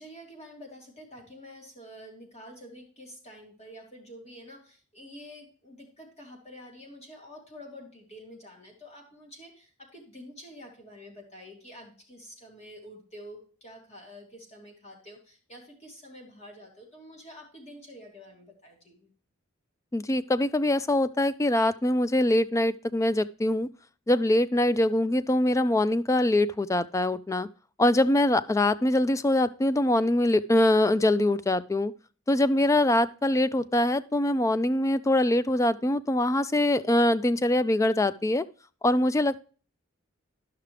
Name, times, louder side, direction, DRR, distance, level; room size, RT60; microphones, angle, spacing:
voice 1, 0.0-19.1, equal, 35° left, -1 dB, 2.7 m, -48 dB
voice 2, 19.9-23.7 24.1-27.5 27.8-31.9 32.3-38.5 38.8-39.4, left 1 dB, 15° left, 15 dB, 0.3 m, -23 dB
12.5 x 5.8 x 3.3 m, 0.40 s
head